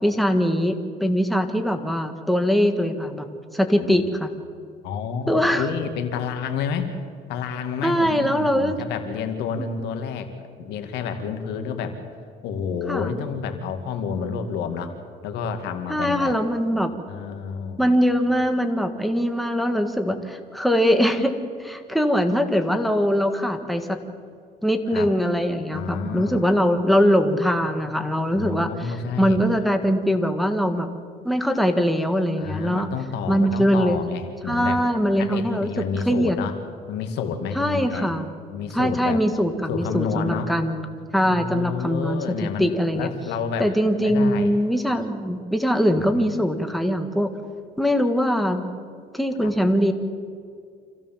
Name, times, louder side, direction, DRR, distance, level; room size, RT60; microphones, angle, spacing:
voice 1, 0.0-3.3 3.5-4.3 5.3-5.7 7.8-8.8 9.6-9.7 12.9-13.1 15.9-16.9 17.8-24.0 24.6-30.9 31.2-32.9 33.3-34.0 34.5-35.7 36.1-36.4 37.5-38.3 38.7-40.9 41.1-43.1 43.6-47.3 47.8-48.7 49.1-49.9, equal, ahead, 6 dB, 1.8 m, -22 dB
voice 2, 4.8-6.9 7.3-10.3 10.6-12.0 12.4-14.9 15.2-16.3 17.1-17.9 24.9-25.1 25.7-26.5 28.3-29.4 32.4-34.8 35.2-36.6 36.9-38.1 38.5-39.2 39.7-40.5 41.3-43.7 44.0-44.5 49.4-49.5, left 6 dB, 90° left, 6 dB, 2.3 m, -29 dB
26.5 x 16.0 x 7.5 m, 2.2 s
cardioid pair, 110°, 17 cm